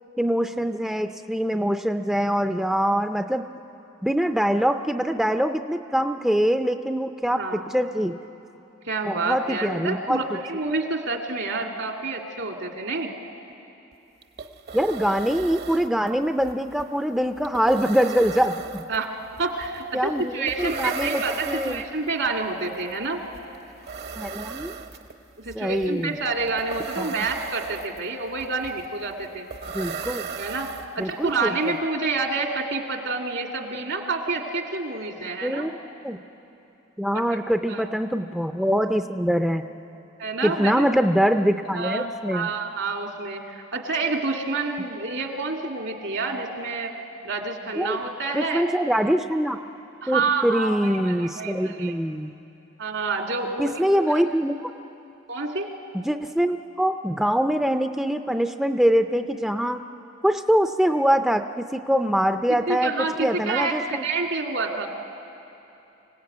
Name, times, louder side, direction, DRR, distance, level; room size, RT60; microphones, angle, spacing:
voice 1, 0.2-3.4 4.0-8.2 9.0-10.4 14.7-18.8 19.9-21.8 24.2-24.8 25.5-26.2 27.0-27.2 29.7-30.3 31.0-31.7 35.4-35.7 36.0-36.2 37.0-39.6 40.4-42.5 47.7-48.0 48.3-49.6 50.1-52.3 53.6-54.7 56.0-59.8 60.2-64.0, equal, 5° right, 7 dB, 0.5 m, -24 dB
voice 2, 7.4-7.7 8.9-13.1 18.9-19.1 19.4-23.2 25.3-29.5 30.4-35.7 37.1-37.2 37.7-37.8 40.2-40.9 41.7-46.9 47.2-48.6 50.0-51.9 52.8-53.8 54.1-54.2 55.3-55.7 62.7-64.9, right 3 dB, 75° right, 2 dB, 2.4 m, -28 dB
sound 1, 13.9-14.0 14.2-31.3, right 6 dB, 55° right, 1.1 m, -37 dB
26.0 x 17.5 x 8.6 m, 2.8 s
head